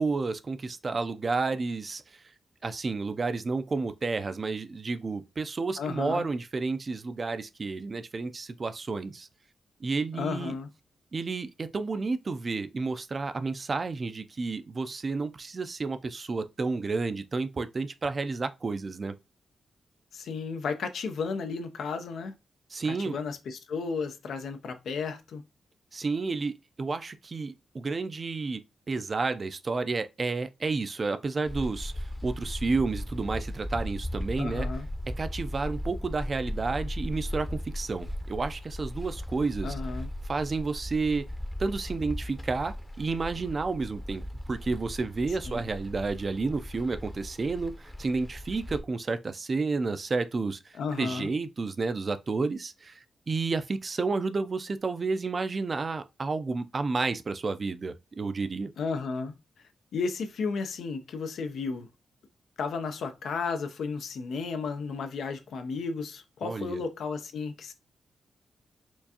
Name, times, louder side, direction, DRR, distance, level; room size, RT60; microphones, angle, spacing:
voice 1, 0.0-2.0 2.6-9.3 9.8-10.5 11.1-19.1 22.7-23.2 25.9-26.5 26.8-28.6 28.9-34.7 35.2-39.7 40.3-41.2 41.6-44.2 44.5-50.6 51.0-53.0 53.3-58.7 66.4-66.8, right 4 dB, 45° right, 0.4 m, -31 dB
voice 2, 5.8-6.3 10.1-10.7 20.1-22.3 22.9-25.4 34.4-34.9 39.6-40.1 45.4-45.7 50.7-51.3 58.8-59.3 59.9-61.9 62.6-67.7, left 5 dB, 80° left, 0.5 m, -33 dB
sound 1, 31.4-48.8, left 1 dB, 15° left, 0.7 m, -37 dB
4.5 x 2.4 x 2.8 m
cardioid pair, 75°, 0 cm